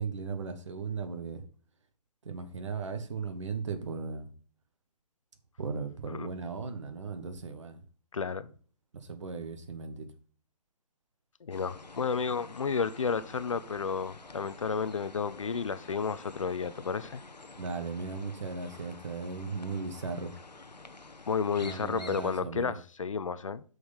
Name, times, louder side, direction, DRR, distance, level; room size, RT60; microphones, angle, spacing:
voice 1, 0.0-1.4 2.2-4.3 5.6-7.8 8.9-10.1 17.6-20.3 21.6-22.7, right 4 dB, 45° right, 1.2 m, -37 dB
voice 2, 8.1-8.5 11.4-17.2 21.3-23.6, left 5 dB, 50° left, 0.5 m, -32 dB
sound 1, 11.5-22.4, left 3 dB, 80° left, 0.8 m, -49 dB
6.4 x 5.5 x 5.4 m
figure-of-eight pair, 140°, 21 cm